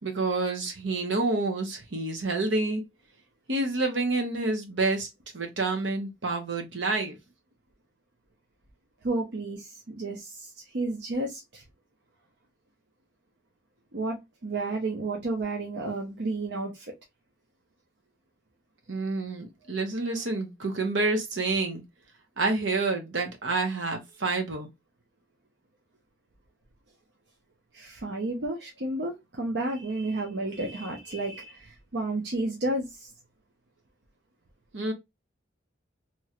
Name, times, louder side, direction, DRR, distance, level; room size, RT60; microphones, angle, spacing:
voice 1, 0.0-2.8 3.5-5.1 5.3-7.2 18.9-21.8 22.4-24.7 34.7-34.9, right 3 dB, 80° right, 1.0 m, -28 dB
voice 2, 9.0-11.6 13.9-16.9 27.7-33.1, right 2 dB, 60° right, 0.7 m, -32 dB
3.0 x 2.9 x 2.4 m
head